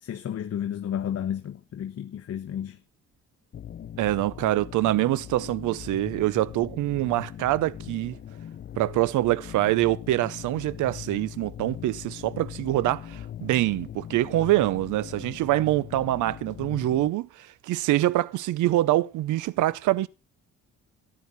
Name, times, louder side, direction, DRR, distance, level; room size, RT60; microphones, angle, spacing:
voice 1, 0.0-2.8, left 9 dB, 55° left, 1.1 m, -32 dB
sound 1, 3.5-17.1, left 10 dB, 40° left, 0.5 m, -41 dB
voice 2, 4.0-8.2 8.8-20.1, right 15 dB, 85° right, 0.7 m, -25 dB
14.5 x 10.0 x 4.1 m
cardioid pair, 90°, 30 cm